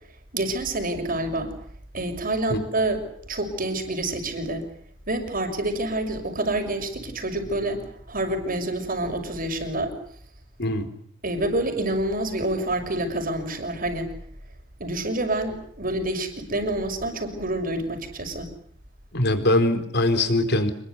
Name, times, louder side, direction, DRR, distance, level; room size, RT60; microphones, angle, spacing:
voice 1, 0.3-1.5 1.9-4.7 5.1-9.9 11.2-14.1 14.8-18.5, right 1 dB, 45° right, 5 dB, 6.3 m, -27 dB
voice 2, 19.1-20.7, left 1 dB, 60° left, 9 dB, 4.2 m, -22 dB
27.5 x 22.0 x 8.3 m, 0.64 s
head